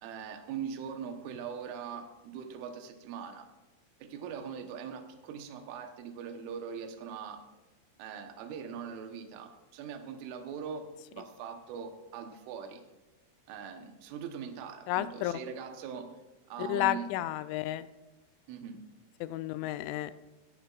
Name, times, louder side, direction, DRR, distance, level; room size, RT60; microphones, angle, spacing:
voice 1, 0.0-3.5 4.0-7.4 8.0-10.9 11.1-12.8 13.5-16.2 16.5-17.1 18.5-18.8, right 7 dB, 85° right, 5 dB, 3.6 m, -41 dB
voice 2, 14.9-15.3 16.6-17.9 19.2-20.1, left 14 dB, 85° left, 13 dB, 2.9 m, -31 dB
19.0 x 13.5 x 2.4 m, 1.1 s
omnidirectional pair, 5.5 m